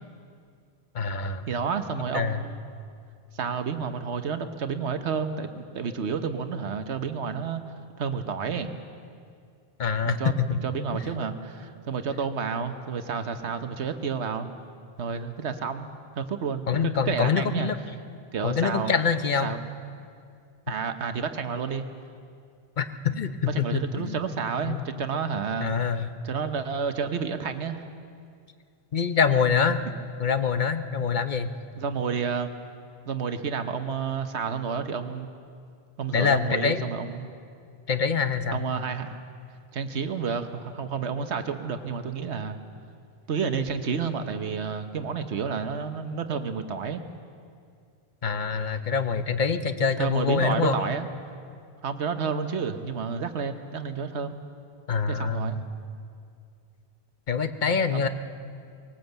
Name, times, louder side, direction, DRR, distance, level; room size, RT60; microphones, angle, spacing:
voice 1, 0.9-1.4 2.1-2.4 9.8-10.6 16.7-17.8 18.4-19.5 22.8-24.2 24.6-24.8 25.6-26.1 28.9-29.8 30.2-31.5 36.1-36.8 37.9-38.6 48.2-50.8 54.9-55.5 57.3-58.1, left 6 dB, 45° left, 10 dB, 1.0 m, -25 dB
voice 2, 1.5-2.6 3.3-7.6 8.0-8.8 10.0-14.5 15.0-15.9 16.2-17.7 18.3-18.9 19.4-19.6 20.7-21.8 23.4-25.7 26.2-27.8 31.8-32.5 33.1-35.3 36.0-37.3 38.5-39.2 39.7-42.6 43.3-47.0 50.0-51.1 51.8-54.4 55.1-55.6 57.9-58.1, right 6 dB, 85° right, 8 dB, 1.3 m, -30 dB
21.0 x 18.5 x 8.0 m, 2.3 s
omnidirectional pair, 1.1 m